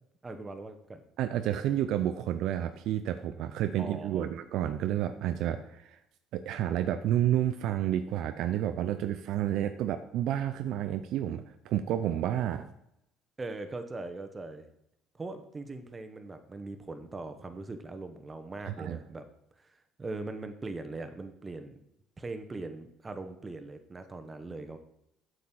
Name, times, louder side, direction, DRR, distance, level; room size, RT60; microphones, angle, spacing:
voice 1, 0.2-1.0 3.8-4.3 13.4-14.6 15.2-19.2 20.0-21.8 22.2-24.8, right 3 dB, 25° right, 8 dB, 1.2 m, -40 dB
voice 2, 1.2-6.0 6.3-12.6 18.6-19.0, right 11 dB, 70° right, 9 dB, 0.5 m, -30 dB
8.4 x 6.6 x 4.5 m, 0.80 s
hypercardioid pair, 70°, 0 cm